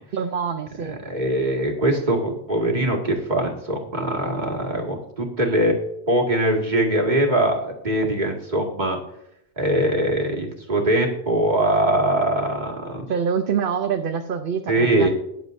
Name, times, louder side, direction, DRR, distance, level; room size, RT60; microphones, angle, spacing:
voice 1, 0.1-1.0 13.1-15.1, right 7 dB, 60° right, 6 dB, 0.9 m, -25 dB
voice 2, 1.0-5.7 6.1-9.0 9.6-13.0 14.7-15.1, right 1 dB, 45° right, 0 dB, 2.3 m, -22 dB
21.0 x 7.3 x 2.7 m, 0.79 s
omnidirectional pair, 1.1 m